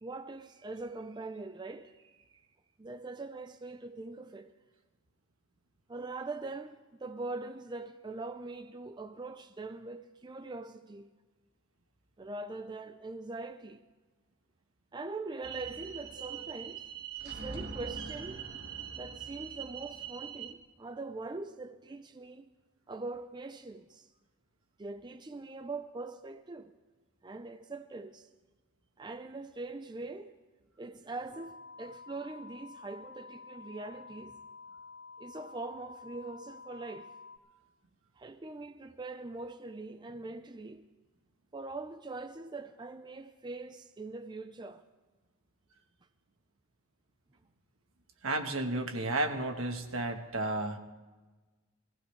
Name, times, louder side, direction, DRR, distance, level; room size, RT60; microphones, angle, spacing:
voice 1, 0.0-2.4 2.8-4.5 5.9-11.1 12.2-13.8 14.9-16.8 17.2-18.5 19.0-22.5 22.9-24.1 24.8-26.7 27.2-28.3 29.0-30.3 30.8-34.4 35.2-37.1 38.2-40.8 41.5-44.8, right 3 dB, 20° right, 0.4 m, -42 dB
sound 1, 15.4-20.5, right 7 dB, 55° right, 1.4 m, -42 dB
sound 2, 31.3-37.4, left 4 dB, 90° left, 2.1 m, -50 dB
voice 2, 48.2-50.8, right 2 dB, 85° right, 1.3 m, -33 dB
20.0 x 15.5 x 3.3 m
head